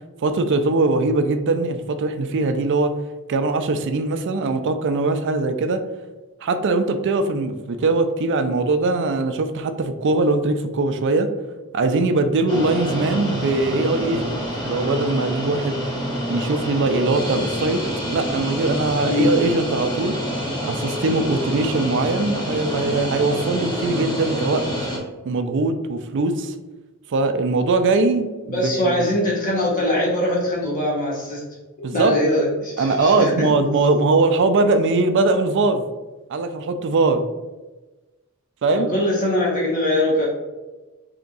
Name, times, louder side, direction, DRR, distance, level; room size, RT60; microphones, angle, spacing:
voice 1, 0.2-2.9 3.3-5.8 6.4-11.3 11.7-15.8 16.3-17.8 18.1-20.2 20.6-24.6 25.2-26.5 27.1-28.9 31.8-32.2 32.8-35.9 36.3-37.2 38.6-38.9, right 3 dB, 55° right, 9 dB, 0.4 m, -21 dB
sound 1, 12.5-25.0, equal, 20° left, 1.2 m, -27 dB
voice 2, 28.5-31.4 31.9-33.5 38.7-40.3, left 1 dB, 40° left, -5 dB, 1.4 m, -22 dB
3.4 x 2.8 x 4.0 m, 1.2 s
head